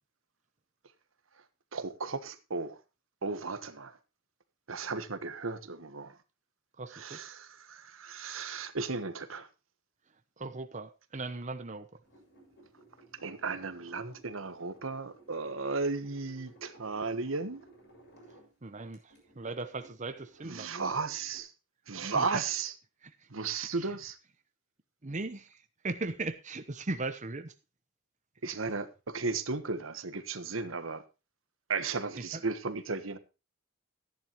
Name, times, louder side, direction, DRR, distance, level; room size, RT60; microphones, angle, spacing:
voice 1, 1.7-2.8 3.2-4.0 4.7-6.2 6.9-9.5 13.2-17.6 20.4-21.5 21.9-22.7 23.3-24.2 28.4-31.0 31.7-33.2, right 4 dB, 85° right, 1.3 m, -35 dB
voice 2, 6.8-7.2 10.4-11.9 18.6-20.7 22.0-22.4 23.0-23.1 23.8-23.9 25.0-27.5 32.2-32.4, right 3 dB, 40° right, 0.9 m, -38 dB
sound 1, 12.0-18.5 18.9-21.4, right 2 dB, 60° left, 7.3 m, -58 dB
14.0 x 10.5 x 3.1 m
head